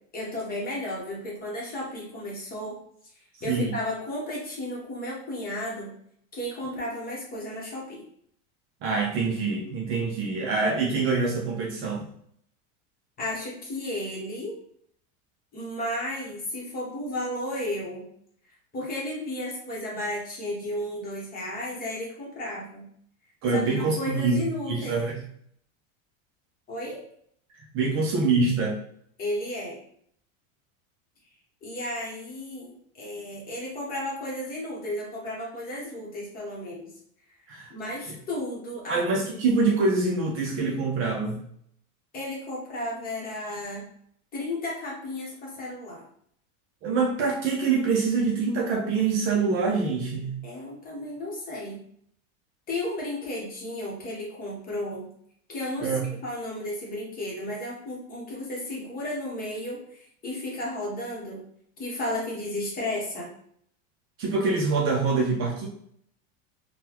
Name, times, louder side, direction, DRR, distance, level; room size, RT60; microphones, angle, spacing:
voice 1, 0.1-2.8 3.0-6.0 6.3-8.0 13.2-14.6 15.5-18.1 18.7-22.9 23.5-25.0 26.7-27.0 29.2-29.8 31.6-36.9 37.4-39.0 42.1-43.9 44.3-46.1 50.4-51.8 52.7-55.1 55.5-61.5 61.8-63.3, left 1 dB, 25° left, -3 dB, 0.9 m, -33 dB
voice 2, 3.4-3.8 8.8-12.0 23.4-24.4 24.7-25.1 27.7-28.8 37.5-37.7 38.1-38.2 38.9-41.4 46.8-50.4 55.8-56.0 64.2-65.7, right 4 dB, 35° right, -1 dB, 0.5 m, -25 dB
3.8 x 2.2 x 2.9 m, 0.66 s
supercardioid pair, 155°, 37 cm